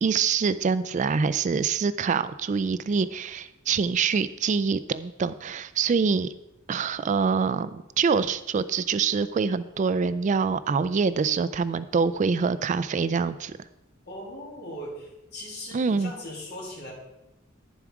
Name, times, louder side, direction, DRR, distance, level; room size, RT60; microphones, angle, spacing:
voice 1, 0.0-6.3 6.7-13.5 15.7-16.1, right 5 dB, 35° right, 15 dB, 0.3 m, -25 dB
voice 2, 14.1-16.9, left 1 dB, 55° left, -3 dB, 3.3 m, -39 dB
10.5 x 7.2 x 4.8 m, 0.96 s
head